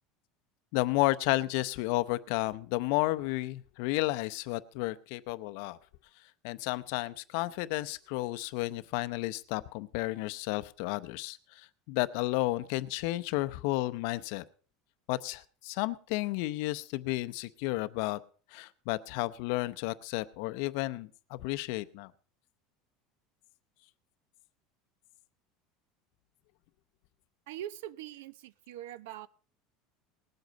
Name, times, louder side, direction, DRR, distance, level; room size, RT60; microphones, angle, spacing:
voice 1, 0.7-5.8 6.4-14.4 15.1-18.2 18.5-22.1, left 19 dB, 60° left, 14 dB, 0.7 m, -32 dB
voice 2, 27.5-29.3, right 12 dB, 85° right, 19 dB, 0.7 m, -42 dB
19.5 x 7.9 x 5.2 m, 0.41 s
cardioid pair, 165°, 0 cm